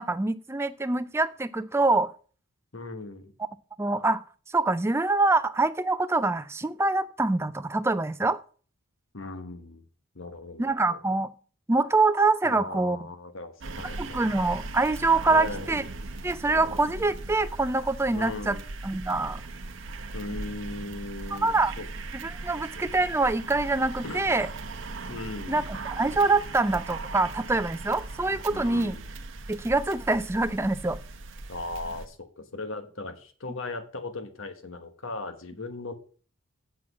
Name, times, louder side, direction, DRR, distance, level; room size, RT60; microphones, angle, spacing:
voice 1, 0.0-2.1 3.8-4.2 4.5-8.4 10.6-11.3 11.7-13.1 14.0-15.9 16.2-18.6 18.8-19.4 21.3-21.7 22.1-24.5 25.5-29.0 29.5-31.0, right 3 dB, 10° right, 13 dB, 0.3 m, -25 dB
voice 2, 2.7-3.3 9.1-9.8 10.1-11.0 12.4-14.2 15.3-15.7 18.1-18.6 20.1-21.8 22.5-22.6 24.0-24.2 25.1-25.6 28.5-29.0 31.5-35.9, left 2 dB, 60° left, 8 dB, 1.2 m, -38 dB
sound 1, 13.6-32.1, right 3 dB, 60° right, 0.9 m, -39 dB
8.3 x 6.0 x 6.0 m, 0.41 s
head